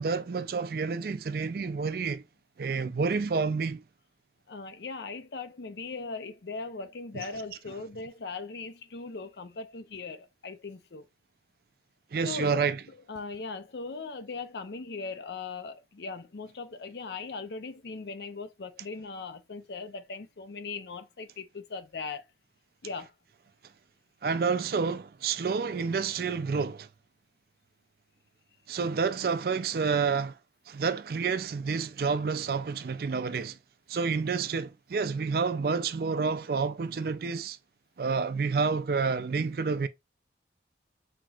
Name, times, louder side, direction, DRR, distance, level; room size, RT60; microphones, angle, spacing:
voice 1, 0.0-2.2 2.6-3.8 7.1-7.3 12.1-12.8 24.2-26.9 28.7-30.3 30.7-33.6 33.9-37.6 38.0-39.9, right 5 dB, 55° right, 0.4 m, -29 dB
voice 2, 4.5-11.1 12.2-12.7 13.1-22.2 22.8-23.1, left 4 dB, 70° left, 0.6 m, -39 dB
5.9 x 2.8 x 2.4 m
head